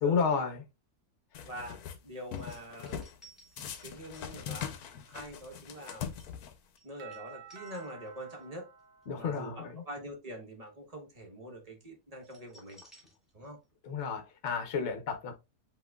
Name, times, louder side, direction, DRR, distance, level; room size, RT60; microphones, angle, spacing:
voice 1, 0.0-0.6 9.1-9.8 13.8-15.3, left 5 dB, 55° left, 1.1 m, -31 dB
sound 1, 1.3-2.0 2.3-3.1 3.6-6.8, left 8 dB, 90° left, 1.2 m, -41 dB
voice 2, 1.4-1.8 2.0-3.1 3.6-6.1 6.8-8.7 9.1-12.8 13.3-13.6, right 1 dB, 25° right, 1.2 m, -45 dB
sound 2, 2.4-8.4 8.8-9.0 12.2-13.7 14.0-14.1, right 1 dB, ahead, 1.9 m, -60 dB
Doorbell, 7.0-9.8, right 6 dB, 70° right, 1.3 m, -51 dB
7.6 x 2.9 x 2.3 m
omnidirectional pair, 1.6 m